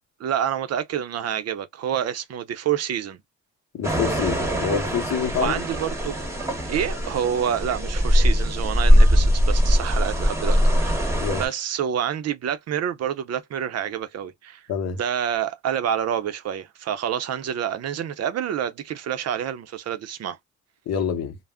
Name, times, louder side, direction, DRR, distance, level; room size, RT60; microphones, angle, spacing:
voice 1, 0.2-3.2 5.4-6.2 6.6-14.6 15.0-20.4, right 9 dB, 55° right, 0.5 m, -28 dB
voice 2, 3.7-5.5 11.2-11.4 14.7-15.0 20.9-21.4, left 7 dB, 60° left, 0.7 m, -26 dB
sound 1, 3.8-11.5, equal, 10° right, 0.9 m, -21 dB
2.2 x 2.0 x 3.4 m
cardioid pair, 90°, 30 cm